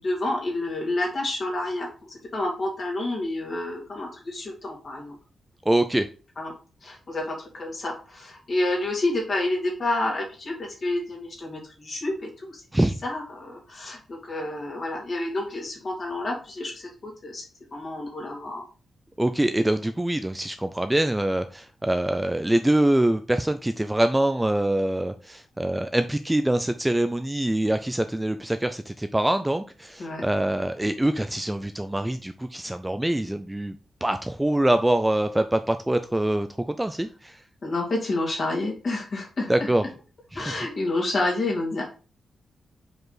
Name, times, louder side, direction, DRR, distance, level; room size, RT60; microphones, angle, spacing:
voice 1, 0.0-5.2 6.4-6.5 6.8-12.6 13.0-17.4 17.7-18.6 30.0-30.2 37.6-39.7 40.3-41.8, left 2 dB, 35° left, -1 dB, 2.1 m, -29 dB
voice 2, 5.7-6.1 12.7-12.9 19.2-33.8 34.0-37.3 39.5-39.8 40.3-40.4, right 1 dB, 10° right, 9 dB, 0.3 m, -24 dB
5.1 x 4.8 x 3.9 m, 0.37 s
wide cardioid pair, 165°, 0 cm